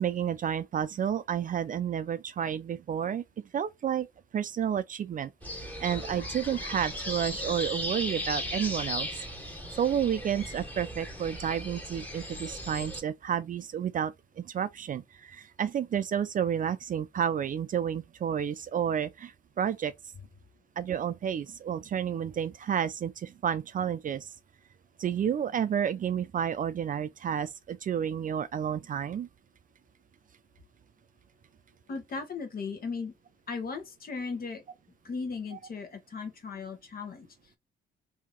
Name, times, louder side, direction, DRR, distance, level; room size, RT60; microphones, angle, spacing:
voice 1, 0.0-3.2 3.5-4.1 4.3-9.1 9.5-19.9 20.8-24.3 25.0-29.3, right 8 dB, 45° right, 0.4 m, -31 dB
sound 1, 5.4-13.0, left 1 dB, 10° left, 1.7 m, -37 dB
voice 2, 31.9-33.1 33.5-34.6 35.0-37.6, left 4 dB, 50° left, 1.2 m, -37 dB
2.9 x 2.8 x 3.7 m
cardioid pair, 90°, 20 cm